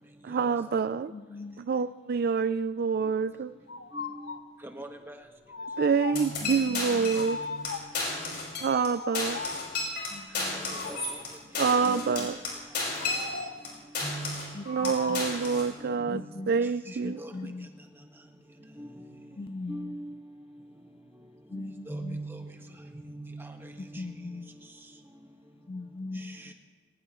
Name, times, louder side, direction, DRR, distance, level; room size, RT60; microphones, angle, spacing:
voice 1, 0.2-1.1 1.6-3.5 5.8-7.4 8.6-9.4 11.6-12.4 14.7-16.2 16.5-17.2, right 5 dB, 55° right, 0.4 m, -27 dB
voice 2, 1.1-1.6 6.4-7.2 10.1-10.9 11.9-12.3 14.5-15.3 15.9-16.6 16.9-17.7 19.4-20.0 21.5-22.2 23.8-24.5 25.7-26.5, left 2 dB, 30° left, 0.4 m, -41 dB
sound 1, 3.7-4.5 5.5-6.4 7.1-8.1 8.9-9.8 10.7-11.4 13.0-13.7 14.6-15.4, left 4 dB, 80° left, 0.8 m, -38 dB
voice 3, 3.9-4.3 4.6-5.2 6.1-6.4 8.2-8.4 10.5-11.0 11.7-12.2 14.0-14.4 16.1-16.3 17.2-17.3 18.8-18.9 19.7-20.2 21.5-22.4 23.0-23.5 23.9-24.1, right 1 dB, 15° right, 1.5 m, -40 dB
sound 2, 6.2-7.3 7.6-7.7 7.9-8.9 9.1-13.7 14.0-14.5 14.8-15.7, left 3 dB, 60° left, 5.3 m, -33 dB
20.5 x 19.0 x 3.1 m
head